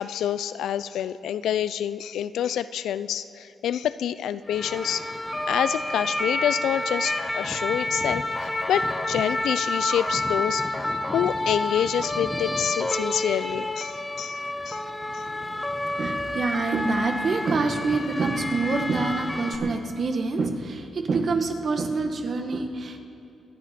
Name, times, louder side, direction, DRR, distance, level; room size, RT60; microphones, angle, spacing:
voice 1, 0.0-5.1 5.5-10.7 11.1-13.9 14.2-14.4 14.7-14.8, left 10 dB, 85° left, 15 dB, 0.4 m, -27 dB
sound 1, 4.5-19.6, left 1 dB, 15° left, 0.8 m, -29 dB
voice 2, 16.0-23.0, right 3 dB, 50° right, 5 dB, 1.4 m, -26 dB
26.0 x 11.0 x 4.3 m, 2.6 s
cardioid pair, 115°, 0 cm